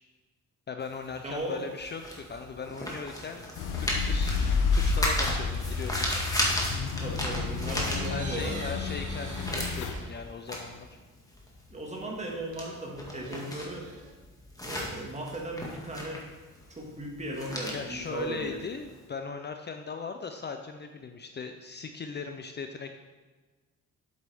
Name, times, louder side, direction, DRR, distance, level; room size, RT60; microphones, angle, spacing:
voice 1, 0.7-3.5 3.8-4.4 4.7-6.1 8.1-11.0 17.7-22.9, left 5 dB, 35° left, 6 dB, 0.6 m, -39 dB
sound 1, 0.8-8.6 8.9-19.0, left 1 dB, 10° left, 1.9 m, -35 dB
voice 2, 1.2-1.6 7.0-8.7 11.7-13.9 14.6-16.3 16.7-18.6, right 1 dB, 20° right, 0 dB, 2.0 m, -36 dB
sound 2, 3.6-9.9, left 4 dB, 80° left, 0.9 m, -30 dB
sound 3, 5.4-6.4 7.7-10.5 10.8-10.9 12.5-14.1, right 4 dB, 80° right, 1.4 m, -46 dB
8.0 x 8.0 x 3.6 m, 1.3 s
cardioid pair, 90°, 30 cm